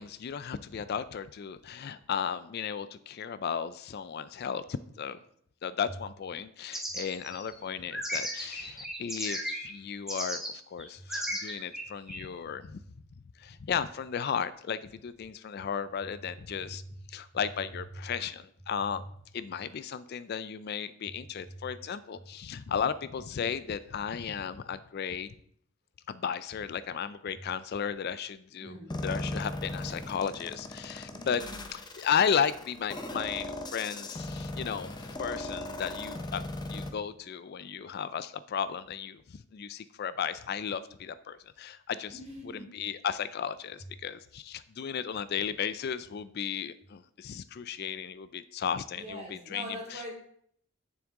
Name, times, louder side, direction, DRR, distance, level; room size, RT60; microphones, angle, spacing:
voice 1, 0.0-5.2 5.6-10.4 10.7-12.8 13.4-16.8 17.1-19.0 19.3-25.3 26.1-31.4 31.7-36.4 36.7-42.2 42.5-49.6 49.9-50.0, left 7 dB, 50° left, 14 dB, 0.3 m, -34 dB
sound 1, 6.7-9.7 10.1-10.5 10.8-12.2, equal, ahead, 1.2 m, -35 dB
voice 2, 15.9-16.3 17.4-17.5 17.9-18.0 18.8-19.1 21.5-21.7 28.6-29.0 31.0-31.7 32.2-32.3 42.1-42.7 48.9-50.1, right 1 dB, 30° right, -2 dB, 2.4 m, -44 dB
sound 2, 28.9-36.9, left 2 dB, 20° left, 0.7 m, -38 dB
8.9 x 7.1 x 3.7 m, 0.66 s
head